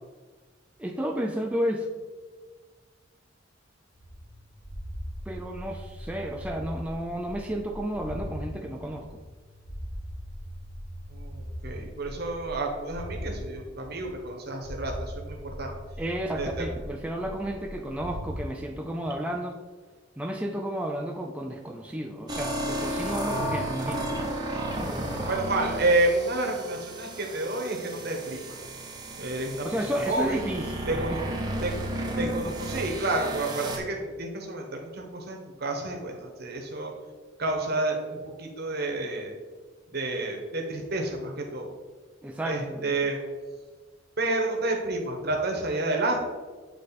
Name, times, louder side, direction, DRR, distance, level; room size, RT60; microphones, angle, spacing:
voice 1, 0.8-1.9 5.3-9.2 16.0-19.6 20.2-24.1 29.6-31.2 42.2-43.0, equal, 5° right, 2 dB, 0.3 m, -32 dB
sound 1, 3.9-8.4 8.8-13.4 13.8-14.3 14.6-18.4, equal, 60° left, 2.0 m, -39 dB
voice 2, 11.1-15.7 16.4-16.7 25.3-28.6 29.1-29.7 30.1-30.4 30.9-31.2 31.6-31.7 32.2-36.9 37.4-39.3 39.9-41.7 42.4-43.2 44.2-46.2, right 2 dB, 55° right, 1 dB, 1.1 m, -29 dB
sound 2, 22.3-33.8, right 1 dB, 20° right, 0.7 m, -33 dB
8.4 x 3.3 x 4.1 m, 1.4 s
head